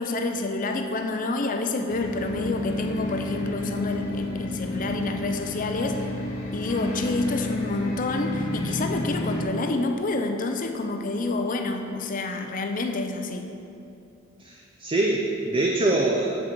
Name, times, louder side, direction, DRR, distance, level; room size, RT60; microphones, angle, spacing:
voice 1, 0.0-6.1 6.5-13.5, left 2 dB, 40° left, 5 dB, 0.5 m, -28 dB
sound 1, 1.9-9.4, left 2 dB, 85° left, 1.1 m, -30 dB
voice 2, 14.4-16.3, right 2 dB, 25° right, -1 dB, 0.5 m, -24 dB
7.3 x 6.1 x 4.4 m, 2.7 s
head